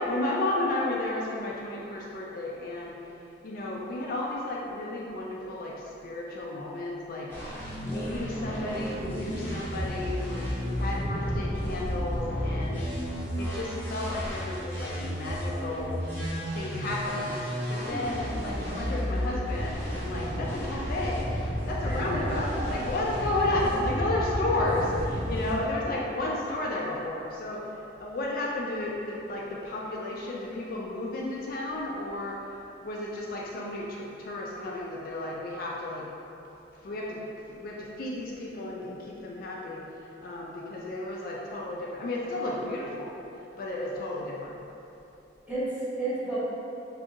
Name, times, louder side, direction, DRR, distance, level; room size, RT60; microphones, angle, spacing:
voice 1, 0.0-3.0 3.4-7.3 7.8-10.5 10.8-12.9 13.4-21.3 21.7-27.7 28.0-36.1 36.7-39.8 40.2-43.1 43.6-44.6, left 2 dB, 50° left, -3 dB, 0.3 m, -33 dB
sound 1, 7.3-25.5, equal, 10° left, 0.8 m, -32 dB
voice 2, 21.8-23.0 45.5-46.4, right 1 dB, 10° right, -12 dB, 1.0 m, -32 dB
2.7 x 2.6 x 3.6 m, 2.9 s
head